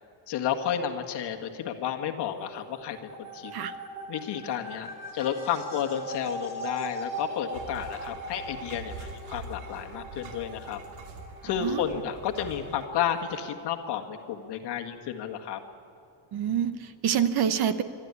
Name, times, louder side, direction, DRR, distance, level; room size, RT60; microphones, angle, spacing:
voice 1, 0.3-3.5 4.1-10.8 11.4-15.6, left 9 dB, 55° left, 4 dB, 1.8 m, -32 dB
sound 1, 2.2-13.5, equal, 15° right, 3.0 m, -41 dB
sound 2, 7.5-12.9, right 3 dB, 75° right, 2.7 m, -44 dB
voice 2, 16.3-17.8, right 9 dB, 50° right, 11 dB, 1.0 m, -26 dB
26.0 x 12.5 x 9.7 m, 2.4 s
cardioid pair, 180°, 48 cm